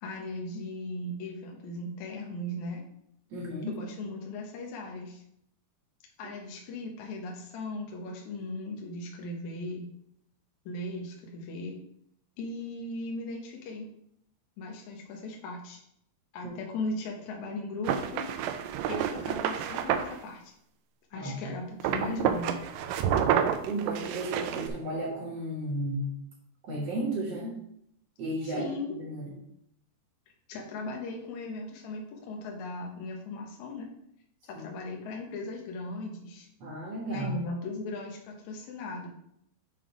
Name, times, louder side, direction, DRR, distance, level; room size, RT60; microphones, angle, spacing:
voice 1, 0.0-2.8 3.7-5.2 6.2-9.8 10.7-11.8 12.4-13.9 14.6-15.8 16.3-18.2 18.9-20.5 21.1-22.6 28.4-29.0 30.5-33.9 34.4-36.5 37.1-39.1, left 2 dB, 75° left, 0 dB, 1.8 m, -37 dB
voice 2, 3.3-3.7 6.2-6.3 16.4-16.5 21.1-21.5 23.7-26.1 26.6-27.6 28.2-28.7 29.0-29.3 34.5-34.7 36.6-37.3, right 1 dB, 55° right, -1 dB, 1.8 m, -34 dB
sound 1, 17.8-20.1 21.8-24.7, right 9 dB, 85° right, 2.0 m, -29 dB
7.5 x 3.8 x 4.8 m, 0.73 s
omnidirectional pair, 4.6 m